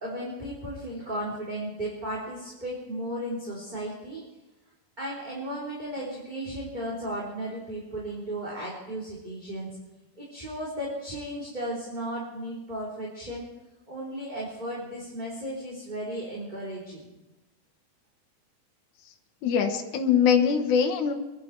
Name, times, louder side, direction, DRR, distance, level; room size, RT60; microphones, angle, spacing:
voice 1, 0.0-4.2 5.0-9.7 10.2-13.5 13.9-17.1, right 1 dB, 15° right, -5 dB, 3.1 m, -35 dB
voice 2, 19.4-21.1, left 7 dB, 75° left, 4 dB, 2.7 m, -22 dB
24.5 x 11.0 x 4.6 m, 1.0 s
omnidirectional pair, 3.5 m